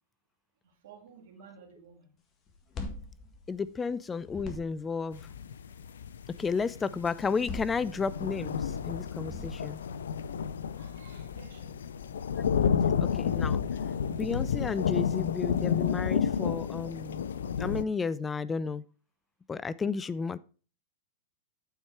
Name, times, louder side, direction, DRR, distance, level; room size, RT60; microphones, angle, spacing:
voice 1, 0.6-2.1 10.7-11.8, right 6 dB, 70° right, 2.1 m, -54 dB
sound 1, 2.5-3.9 4.2-5.0 7.2-8.4 9.1-10.0, left 3 dB, 35° left, 1.6 m, -41 dB
voice 2, 3.5-5.3 6.4-9.8 13.0-13.6 14.1-17.3 17.6-18.8 19.5-20.4, left 5 dB, 20° left, 0.3 m, -32 dB
sound 2, 5.1-17.8, left 7 dB, 85° left, 0.4 m, -31 dB
8.9 x 4.4 x 4.6 m
hypercardioid pair, 110°, 0 cm